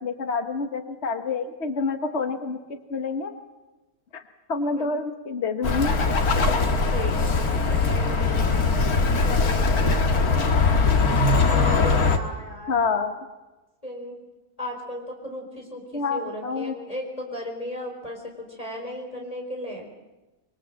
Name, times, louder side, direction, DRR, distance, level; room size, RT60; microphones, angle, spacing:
voice 1, 0.0-2.6 2.9-3.3 4.1-4.2 4.5-5.9 12.7-13.1 15.9-16.8, left 4 dB, 45° left, 6 dB, 1.6 m, -27 dB
Bird, 5.6-12.2, left 4 dB, 75° left, 2.3 m, -21 dB
voice 2, 6.9-8.7 9.2-10.4 11.5-12.7 13.8-14.2 14.6-19.9, left 1 dB, 25° left, 1 dB, 4.3 m, -36 dB
25.5 x 23.5 x 7.6 m, 1.1 s
omnidirectional pair, 1.6 m